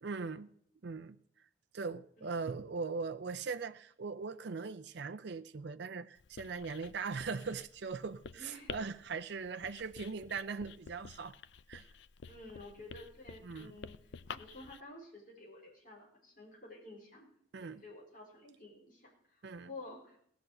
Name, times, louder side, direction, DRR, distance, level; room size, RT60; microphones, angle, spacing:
voice 1, 0.0-0.5 0.8-1.2 1.7-11.4 11.7-11.9 13.4-13.7 17.5-17.8 19.4-19.7, right 4 dB, 55° right, 0.5 m, -40 dB
voice 2, 2.2-2.5 8.3-8.7 12.2-14.0 14.3-17.3 17.6-20.2, left 2 dB, 40° left, 4.2 m, -52 dB
Writing, 6.2-14.8, left 5 dB, 60° left, 0.5 m, -50 dB
17.0 x 6.1 x 7.8 m
head